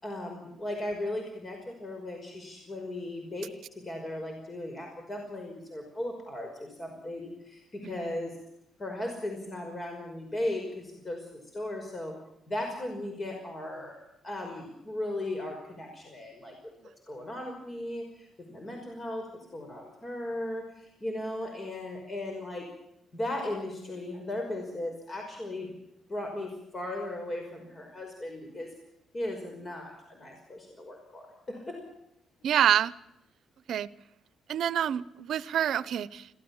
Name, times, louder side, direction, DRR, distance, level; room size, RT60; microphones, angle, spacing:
voice 1, 0.0-8.3 8.8-12.1 12.5-16.6 17.1-19.3 19.5-22.7 23.1-25.7 26.1-28.7 29.1-31.8, left 1 dB, 30° left, 5.5 m, -37 dB
voice 2, 32.4-32.9 33.7-33.9 34.5-36.3, right 10 dB, 70° right, 0.8 m, -27 dB
22.0 x 17.0 x 7.3 m
cardioid pair, 90°, 0 cm